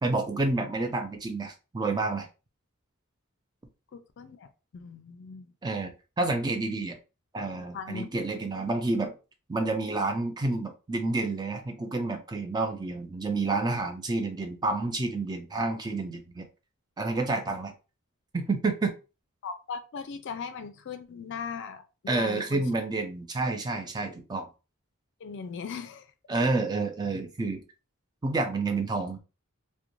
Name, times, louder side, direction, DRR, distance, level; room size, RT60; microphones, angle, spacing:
voice 1, 0.0-2.3 5.6-7.0 7.3-9.2 9.5-16.5 17.0-17.7 18.3-18.9 22.1-24.5 26.3-27.6 28.2-29.2, right 3 dB, 20° right, 0.4 m, -29 dB
voice 2, 3.9-4.5 4.7-5.5 7.7-8.3 19.4-22.6 25.2-26.1, left 5 dB, 55° left, 0.4 m, -39 dB
2.5 x 2.1 x 2.9 m
head